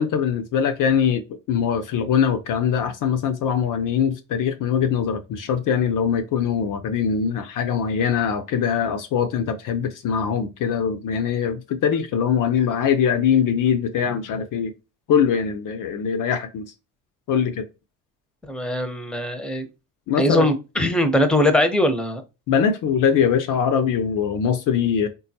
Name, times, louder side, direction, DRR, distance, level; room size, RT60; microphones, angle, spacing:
voice 1, 0.0-14.7 15.1-16.7 17.3-17.7 20.1-20.5 22.5-25.1, left 7 dB, 50° left, 0.6 m, -22 dB
voice 2, 18.5-19.7 20.2-22.2, left 1 dB, ahead, 0.7 m, -21 dB
3.5 x 2.3 x 2.8 m
hypercardioid pair, 60°, 41 cm